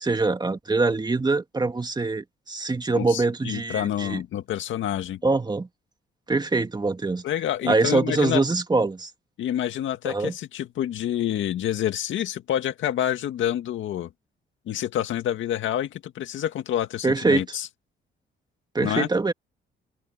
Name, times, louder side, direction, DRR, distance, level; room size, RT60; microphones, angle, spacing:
voice 1, 0.0-4.2 5.2-5.7 6.3-7.2 7.6-9.1 10.0-10.3 17.0-17.4 18.7-19.3, right 3 dB, 20° right, 2.2 m, -24 dB
voice 2, 2.9-5.2 7.2-8.4 9.4-14.1 14.7-17.7 18.8-19.1, left 11 dB, 75° left, 2.1 m, -28 dB
open air
cardioid pair, 90°, 20 cm